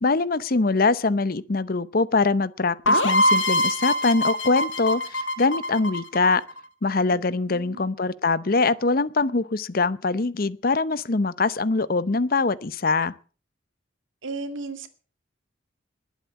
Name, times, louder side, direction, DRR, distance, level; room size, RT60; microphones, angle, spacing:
voice 1, 0.0-6.4 6.8-13.1, left 3 dB, 50° left, 0.7 m, -23 dB
sound 1, 2.9-6.6, left 1 dB, 80° left, 1.6 m, -23 dB
voice 2, 7.1-7.9 14.2-14.9, right 3 dB, 85° right, 2.1 m, -36 dB
21.0 x 8.2 x 7.1 m
head